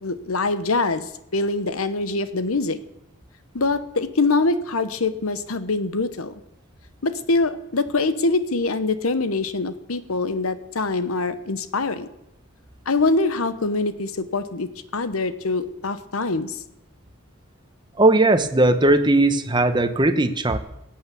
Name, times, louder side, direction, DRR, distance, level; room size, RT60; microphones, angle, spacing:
voice 1, 0.0-2.8 3.5-6.3 7.0-12.1 12.9-16.6, left 3 dB, 80° left, 12 dB, 1.0 m, -24 dB
voice 2, 18.0-20.6, right 2 dB, 20° right, 10 dB, 0.9 m, -18 dB
17.0 x 8.8 x 7.1 m, 0.83 s
head